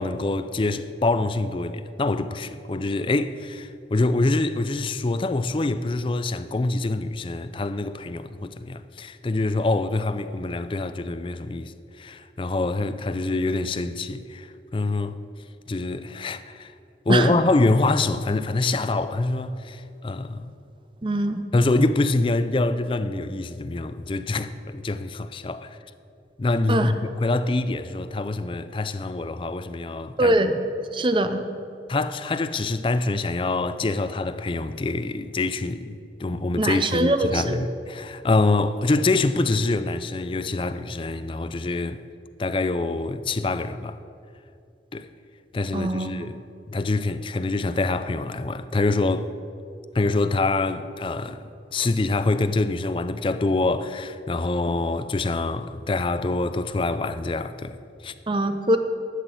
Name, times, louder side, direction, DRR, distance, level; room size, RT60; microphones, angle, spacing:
voice 1, 0.0-15.2 15.7-16.7 17.1-20.6 21.5-25.8 26.4-30.4 31.9-42.0 42.4-44.0 44.9-45.1 45.5-46.4 46.7-49.3 49.9-58.1, left 2 dB, 30° left, 0.4 m, -25 dB
voice 2, 21.0-21.4 26.7-26.9 30.2-30.6 30.9-31.4 36.6-37.6 45.7-46.1 58.3-58.8, right 1 dB, 30° right, 0.6 m, -22 dB
11.5 x 6.0 x 8.2 m
head